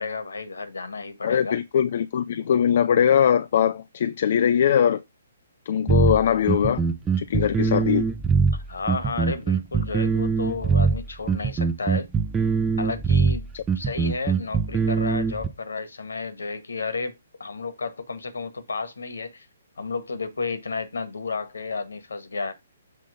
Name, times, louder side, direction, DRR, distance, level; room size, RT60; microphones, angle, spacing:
voice 1, 0.0-1.6 8.5-12.1 12.8-13.5 13.7-19.4 19.8-22.5, left 4 dB, 70° left, 1.7 m, -32 dB
voice 2, 1.2-5.0 5.7-6.8 7.2-8.1 13.5-13.6, left 8 dB, 50° left, 0.5 m, -21 dB
sound 1, 5.9-15.5, right 5 dB, 10° right, 0.8 m, -22 dB
7.6 x 3.8 x 5.1 m
figure-of-eight pair, 130°, 0 cm